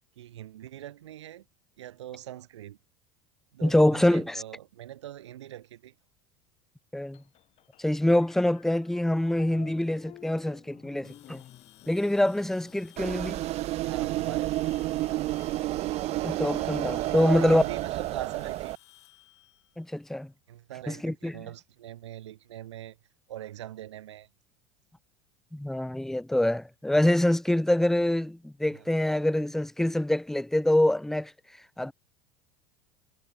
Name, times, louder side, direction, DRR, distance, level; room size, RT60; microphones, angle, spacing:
voice 1, 0.1-1.4 1.8-2.8 3.5-5.9 9.5-9.8 13.8-15.3 17.2-18.7 20.5-23.0 23.3-24.3 28.7-28.9, right 12 dB, 75° right, 5.1 m, -42 dB
voice 2, 3.6-4.4 6.9-7.2 7.8-11.4 11.9-13.4 16.2-17.6 19.8-20.3 20.9-21.3 25.5-31.3 31.8-31.9, left 1 dB, ahead, 0.5 m, -25 dB
sound 1, 7.1-13.8, left 13 dB, 45° left, 5.2 m, -54 dB
sound 2, 11.0-20.3, left 15 dB, 70° left, 4.6 m, -58 dB
sound 3, 13.0-18.8, right 16 dB, 45° right, 0.7 m, -30 dB
hypercardioid pair, 80°, 15 cm